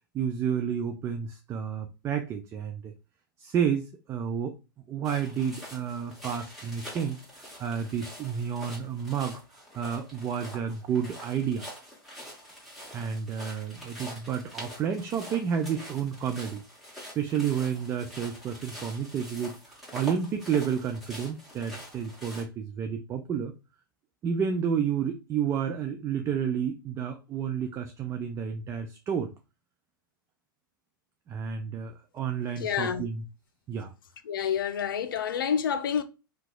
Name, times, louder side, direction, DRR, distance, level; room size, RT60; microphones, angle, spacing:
voice 1, 0.1-2.9 3.4-4.6 4.9-9.4 9.7-11.7 12.9-16.6 17.0-23.5 24.2-29.3 31.3-33.2 33.7-33.9, right 7 dB, 25° right, 0.4 m, -31 dB
sound 1, 5.0-22.4, equal, ahead, 1.4 m, -45 dB
voice 2, 32.6-33.0 34.2-36.0, left 8 dB, 70° left, 0.5 m, -28 dB
2.8 x 2.3 x 3.7 m
hypercardioid pair, 100°, 12 cm